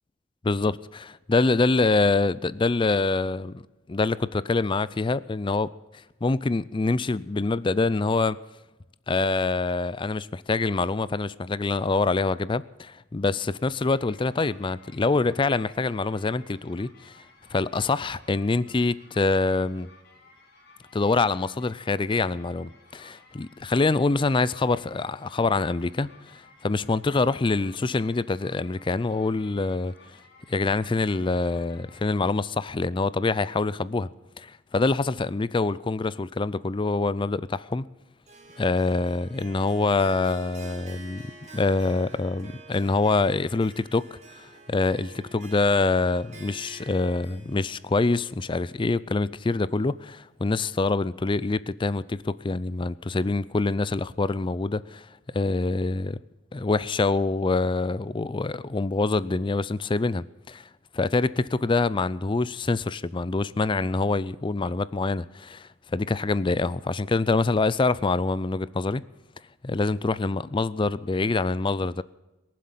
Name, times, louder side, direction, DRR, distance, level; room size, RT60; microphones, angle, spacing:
voice 1, 0.4-3.6 3.9-5.7 6.2-8.4 9.1-17.2 17.5-19.9 20.9-29.9 30.5-34.1 34.4-37.9 38.6-41.2 41.5-55.1 55.3-56.2 56.5-60.6 60.9-69.0 69.6-72.0, left 3 dB, 25° left, 0.4 m, -25 dB
sound 1, 13.8-32.1, left 3 dB, 50° left, 3.2 m, -56 dB
Harp, 38.3-49.5, right 3 dB, 35° right, 2.5 m, -48 dB
22.0 x 7.6 x 7.3 m
head